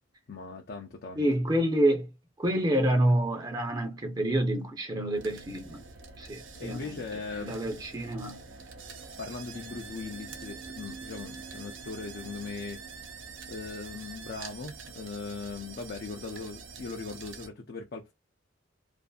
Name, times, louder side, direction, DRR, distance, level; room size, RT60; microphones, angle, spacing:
voice 1, 0.3-1.3 6.6-7.5 9.0-12.8 13.5-18.1, left 4 dB, 55° left, 0.5 m, -39 dB
voice 2, 1.2-2.1 2.4-5.8 6.2-7.0 7.4-8.4, right 1 dB, 20° right, 0.6 m, -27 dB
sound 1, 5.1-17.5, right 4 dB, 75° right, 0.6 m, -45 dB
2.5 x 2.5 x 2.3 m
head